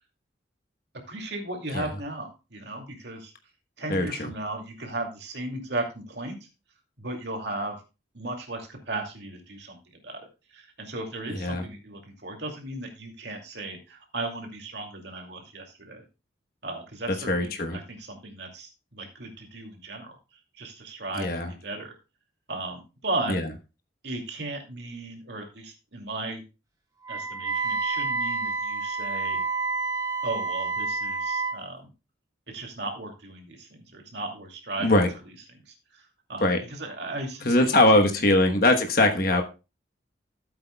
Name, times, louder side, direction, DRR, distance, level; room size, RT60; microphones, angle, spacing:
voice 1, 1.1-3.3 3.8-6.4 7.0-7.7 8.1-9.8 10.0-10.2 10.5-16.0 16.6-20.1 20.6-21.9 22.5-23.4 24.0-26.4 27.1-29.4 30.2-31.9 32.5-35.0 35.7-36.0 36.3-38.0, right 2 dB, 65° right, 2 dB, 2.5 m, -36 dB
voice 2, 3.9-4.3 11.3-11.6 17.3-17.8 21.2-21.5 23.3-23.5 34.8-35.1 36.4-36.6 37.4-39.4, left 1 dB, 50° left, 4 dB, 1.1 m, -21 dB
Wind instrument woodwind instrument, 27.0-31.6, right 4 dB, 20° right, 1.8 m, -29 dB
14.0 x 8.1 x 2.3 m, 0.29 s
head